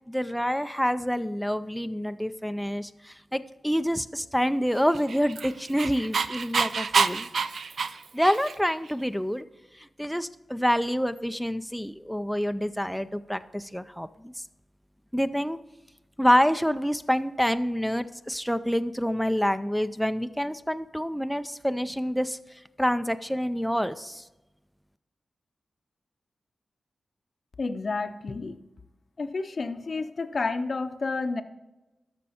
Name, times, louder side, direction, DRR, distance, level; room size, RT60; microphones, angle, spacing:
voice 1, 0.1-7.3 8.1-9.4 9.8-14.1 15.1-15.6 16.2-22.4 22.8-24.2, equal, ahead, 10 dB, 0.4 m, -27 dB
Dog, 4.9-8.7, right 5 dB, 75° right, 0.4 m, -27 dB
voice 2, 27.6-28.6 29.2-31.4, left 3 dB, 50° left, 9 dB, 0.6 m, -30 dB
13.0 x 5.3 x 4.2 m, 0.99 s
wide cardioid pair, 85°, 0 cm